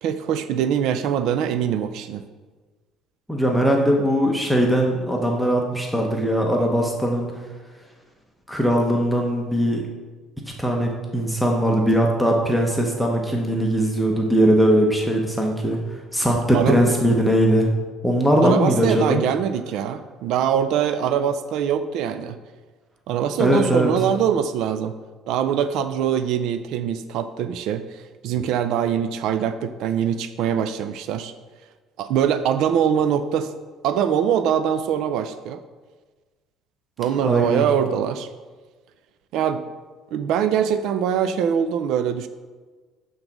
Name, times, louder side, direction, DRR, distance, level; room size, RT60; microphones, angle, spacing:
voice 1, 0.0-2.2 16.5-16.8 18.4-22.4 23.1-24.9 25.3-31.3 32.0-33.5 33.8-35.6 37.0-38.3 39.3-39.6 40.1-42.3, right 8 dB, 65° right, 10 dB, 0.4 m, -23 dB
voice 2, 3.3-7.3 8.5-9.8 10.6-15.8 16.1-17.7 18.0-19.2 23.4-23.9 37.2-37.7, equal, ahead, 0 dB, 0.7 m, -20 dB
7.9 x 3.9 x 6.0 m, 1.4 s
cardioid pair, 160°, 0 cm